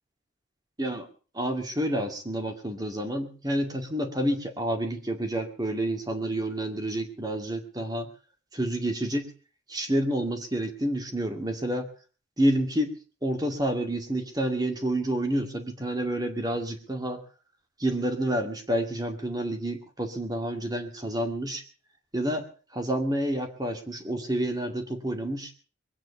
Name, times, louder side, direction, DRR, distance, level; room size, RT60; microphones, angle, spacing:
voice 1, 1.3-8.1 8.5-9.3 9.7-11.9 12.4-12.9 13.2-17.2 17.8-21.6 22.1-22.4 22.7-25.5, right 1 dB, 20° right, 5 dB, 2.2 m, -29 dB
21.5 x 9.3 x 6.8 m, 0.39 s
head